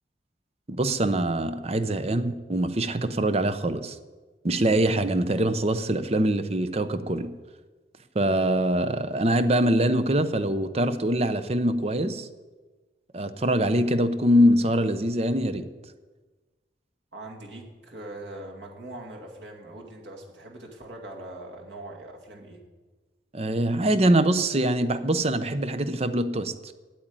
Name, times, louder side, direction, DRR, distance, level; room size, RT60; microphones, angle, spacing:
voice 1, 0.7-4.0 4.4-7.3 8.1-12.3 13.1-15.7 23.3-26.7, right 1 dB, 35° right, 11 dB, 0.7 m, -24 dB
voice 2, 17.1-22.6, right 1 dB, 85° right, 0 dB, 2.3 m, -42 dB
8.8 x 8.7 x 8.9 m, 1.3 s
head